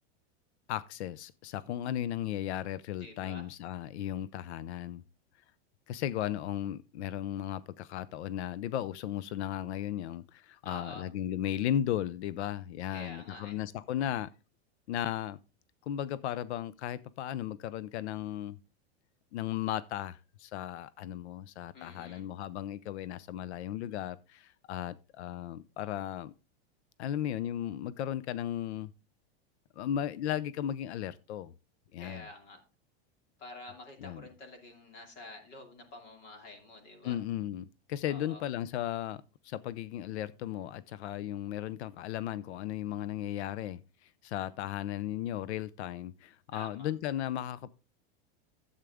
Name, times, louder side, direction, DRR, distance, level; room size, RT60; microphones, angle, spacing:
voice 1, 0.7-5.0 5.9-14.3 14.9-15.4 15.8-18.6 19.3-26.3 27.0-28.9 29.8-31.5 31.9-32.3 34.0-34.2 37.0-47.7, left 11 dB, 85° left, 0.6 m, -36 dB
voice 2, 3.0-3.5 10.6-11.1 12.9-13.6 21.7-22.2 32.0-32.6 33.4-37.2 38.1-38.4 46.5-46.9, left 2 dB, 30° left, 2.7 m, -48 dB
12.5 x 8.2 x 3.5 m
supercardioid pair, 170°, 33 cm